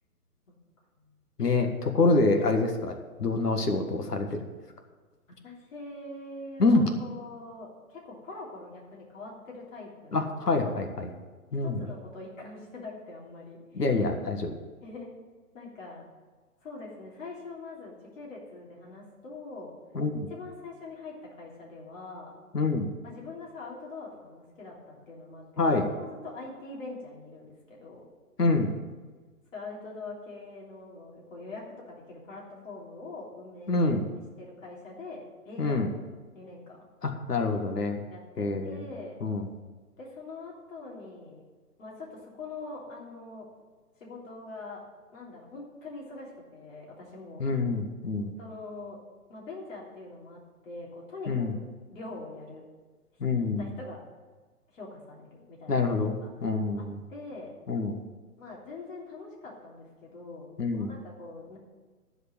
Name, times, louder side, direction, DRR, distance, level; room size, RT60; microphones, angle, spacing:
voice 1, 1.4-4.4 6.6-6.8 10.1-11.1 11.5-11.8 13.7-14.6 19.9-20.3 22.5-22.9 25.6-25.9 28.4-28.7 33.7-34.0 35.6-35.9 37.0-38.0 38.4-38.8 39.2-39.5 47.4-48.3 51.3-51.5 53.2-53.6 55.7-57.0 57.7-58.0 60.6-60.9, left 3 dB, 85° left, 4 dB, 1.7 m, -26 dB
voice 2, 5.4-10.2 11.6-13.8 14.8-15.1 15.5-16.1 16.6-19.7 20.3-22.3 23.0-28.1 29.5-33.7 34.4-35.9 36.3-36.8 38.1-39.2 40.0-41.4 41.8-43.5 44.0-44.8 45.1-47.4 48.4-49.0 49.3-51.6 51.9-52.6 53.4-54.0 54.7-55.8 56.2-56.3 56.8-57.5 58.4-61.6, left 3 dB, 55° left, -3 dB, 3.3 m, -43 dB
12.5 x 5.1 x 8.8 m, 1.4 s
hypercardioid pair, 145°, 46 cm